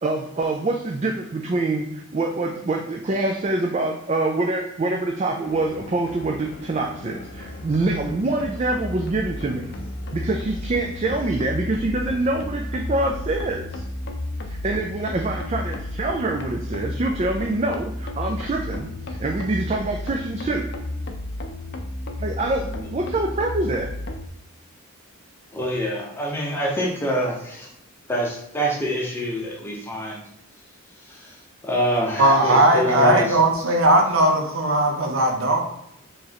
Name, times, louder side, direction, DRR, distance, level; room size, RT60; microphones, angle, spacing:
voice 1, 0.0-9.7 10.1-13.8 14.5-20.7 22.2-23.9, right 2 dB, 30° right, 2 dB, 0.3 m, -25 dB
sound 1, 5.4-24.3, left 1 dB, 50° left, 0.5 m, -33 dB
voice 2, 25.5-27.7 28.1-30.2 31.1-31.3 31.6-33.4, equal, 10° left, -3 dB, 0.8 m, -25 dB
voice 3, 32.2-35.7, right 1 dB, 70° right, 2 dB, 0.7 m, -18 dB
4.5 x 3.2 x 2.8 m, 0.79 s
head